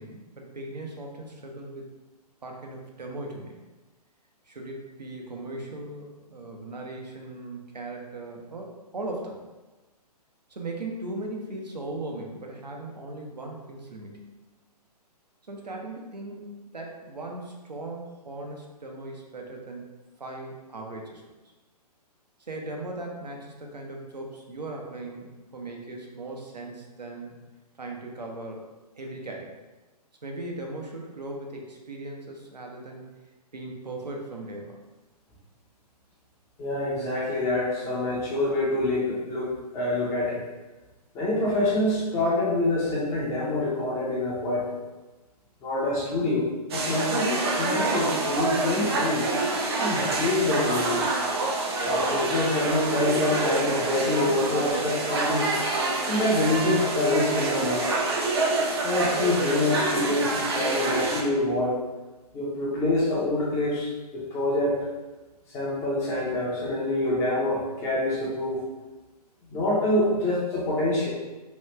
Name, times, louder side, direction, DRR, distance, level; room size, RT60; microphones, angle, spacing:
voice 1, 0.0-1.8 2.4-3.6 4.5-9.4 10.5-14.3 15.5-21.2 22.4-27.3 27.8-28.6 29.0-29.6 30.2-33.1 33.5-34.7, right 2 dB, 80° right, 0 dB, 0.7 m, -38 dB
voice 2, 36.6-40.4 41.1-44.6 45.6-46.5 46.7-49.3 49.8-51.0 51.9-55.5 56.1-57.9 58.8-61.8 62.3-64.9 65.5-68.6 69.5-71.1, left 2 dB, 15° left, -5 dB, 0.5 m, -26 dB
sound 1, 46.7-61.2, right 2 dB, 40° right, 0.5 m, -27 dB
3.0 x 2.3 x 3.2 m, 1.2 s
figure-of-eight pair, 125°, 21 cm